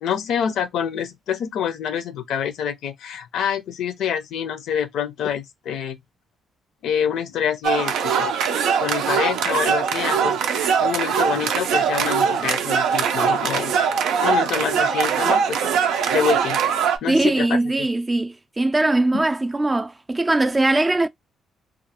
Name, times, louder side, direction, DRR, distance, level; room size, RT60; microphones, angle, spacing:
voice 1, 0.0-6.0 6.8-8.3 8.8-13.8 14.2-15.6 16.1-17.6 19.1-19.2, left 8 dB, 80° left, 0.5 m, -26 dB
sound 1, 7.6-17.0, right 7 dB, 85° right, 0.4 m, -21 dB
voice 2, 17.1-21.1, right 2 dB, 20° right, 0.3 m, -21 dB
2.3 x 2.3 x 2.8 m
cardioid pair, 90°, 0 cm